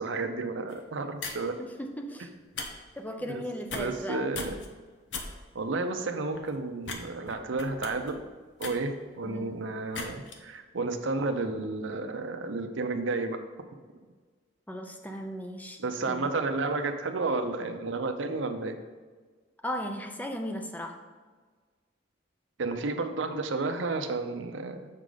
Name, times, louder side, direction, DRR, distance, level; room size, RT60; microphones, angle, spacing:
voice 1, 0.0-1.6 3.2-3.4 3.7-4.6 5.5-8.2 8.6-13.4 15.8-18.7 22.6-24.9, right 3 dB, 85° right, 7 dB, 0.6 m, -31 dB
sound 1, 0.7-0.8 1.2-1.5 2.4-2.7 2.9-3.2 3.6-4.1 4.3-4.7 5.1-5.2 5.7-5.8 6.3-6.5 6.8-7.0 7.2-9.4 9.9-10.3, left 4 dB, 75° left, 0.8 m, -38 dB
voice 2, 1.6-2.3 2.9-4.2 9.2-9.7 14.7-15.8 16.1-16.3 19.6-21.0, equal, 10° left, 4 dB, 0.5 m, -37 dB
7.4 x 4.8 x 3.9 m, 1.5 s
head